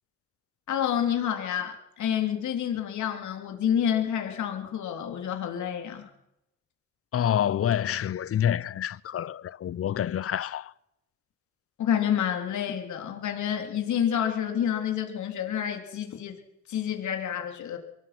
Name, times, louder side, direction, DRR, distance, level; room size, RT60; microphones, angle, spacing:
voice 1, 0.7-6.1 11.8-16.4 16.7-17.8, left 9 dB, 70° left, 3.6 m, -28 dB
voice 2, 7.1-10.7, left 10 dB, 50° left, 0.7 m, -27 dB
24.0 x 18.0 x 6.1 m
cardioid pair, 90°, 30 cm